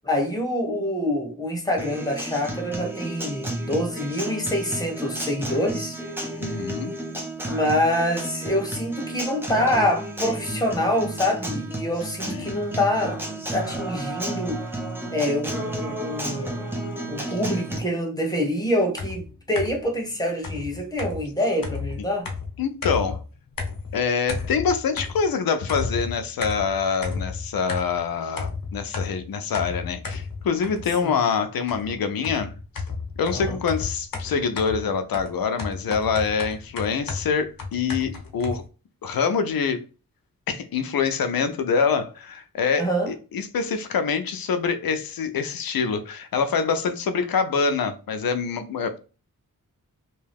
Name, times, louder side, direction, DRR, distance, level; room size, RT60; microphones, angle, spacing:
voice 1, 0.0-6.0 7.5-13.2 13.5-14.6 15.1-16.6 17.1-22.3 31.0-31.1 33.3-33.6 42.8-43.1, left 1 dB, 10° left, 1.0 m, -26 dB
Acoustic guitar, 1.8-17.8, right 1 dB, 5° right, 0.6 m, -32 dB
voice 2, 6.4-6.9 12.2-12.5 22.6-23.2 23.9-32.5 33.2-38.6 39.0-39.8 40.5-49.0, left 5 dB, 90° left, 0.5 m, -25 dB
sound 1, 19.0-19.9 20.4-23.3 23.6-24.0 24.3-25.4 25.7-28.1 28.4-31.1 31.7-38.6, left 4 dB, 70° left, 0.9 m, -33 dB
2.7 x 2.2 x 3.3 m
wide cardioid pair, 90°, 34 cm